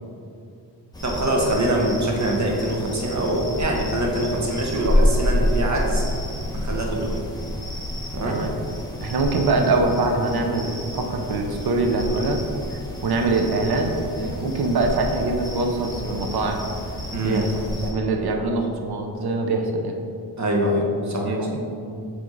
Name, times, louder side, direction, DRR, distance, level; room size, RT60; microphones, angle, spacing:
sound 1, 0.9-17.9, left 1 dB, 10° left, 1.0 m, -29 dB
voice 1, 1.0-6.0 6.5-7.2 8.1-8.4 17.1-17.5 20.4-21.5, right 1 dB, 40° right, -1 dB, 1.2 m, -24 dB
voice 2, 9.0-12.4 12.7-16.6 17.2-20.0 21.2-22.1, right 3 dB, 60° right, 3 dB, 0.7 m, -24 dB
7.6 x 3.6 x 3.9 m, 2.5 s
wide cardioid pair, 110°, 43 cm